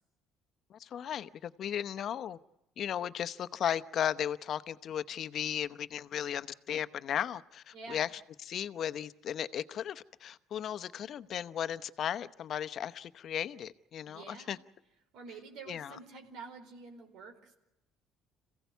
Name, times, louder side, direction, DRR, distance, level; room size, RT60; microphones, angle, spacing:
voice 1, 0.7-2.4 2.8-8.1 8.4-14.6 15.7-16.0, left 9 dB, 50° left, 13 dB, 0.9 m, -36 dB
voice 2, 14.1-14.6 15.1-17.5, right 4 dB, 75° right, 5 dB, 4.4 m, -48 dB
26.5 x 16.5 x 8.3 m, 0.93 s
cardioid pair, 115°, 0 cm